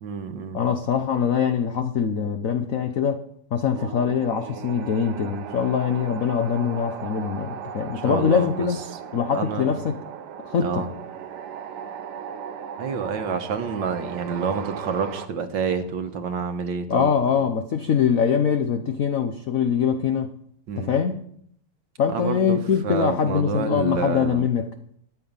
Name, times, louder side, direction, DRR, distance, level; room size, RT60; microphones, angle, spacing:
voice 1, 0.0-0.6 8.0-8.7 9.3-9.7 10.6-10.9 12.8-17.1 20.7-21.0 22.1-22.6 22.8-24.4, right 6 dB, 60° right, 8 dB, 1.6 m, -28 dB
voice 2, 0.5-3.2 3.5-8.8 9.1-10.0 10.4-10.9 16.9-20.4 20.8-21.2 22.0-24.7, left 7 dB, 70° left, 8 dB, 0.8 m, -23 dB
sound 1, 3.7-15.3, right 8 dB, 80° right, 1.7 m, -37 dB
14.0 x 9.7 x 5.4 m, 0.69 s
omnidirectional pair, 2.4 m